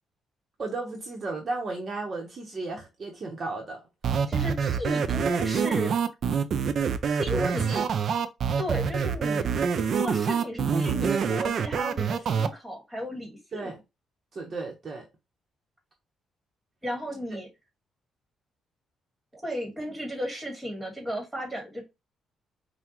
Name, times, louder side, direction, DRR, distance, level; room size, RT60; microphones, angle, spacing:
voice 1, 0.6-3.8 7.3-7.9 13.5-13.8 14.3-15.1 17.3-17.4, right 3 dB, 40° right, 1.1 m, -34 dB
sound 1, 4.0-12.5, right 6 dB, 55° right, 0.5 m, -26 dB
voice 2, 4.3-6.0 7.2-7.6 8.6-9.5 9.9-13.7 16.8-17.5 19.3-21.8, equal, 10° right, 1.8 m, -34 dB
5.7 x 2.4 x 3.0 m
cardioid pair, 125°, 0 cm